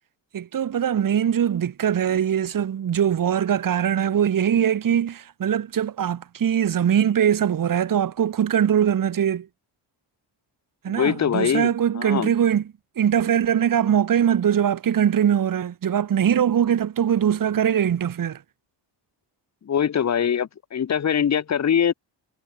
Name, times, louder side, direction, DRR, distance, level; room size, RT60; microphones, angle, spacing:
voice 1, 0.3-9.5 10.8-12.7 13.0-18.4, right 9 dB, 45° right, 1.9 m, -22 dB
voice 2, 10.9-12.3 19.7-21.9, left 8 dB, 35° left, 1.2 m, -23 dB
wide cardioid pair, 165°, 45 cm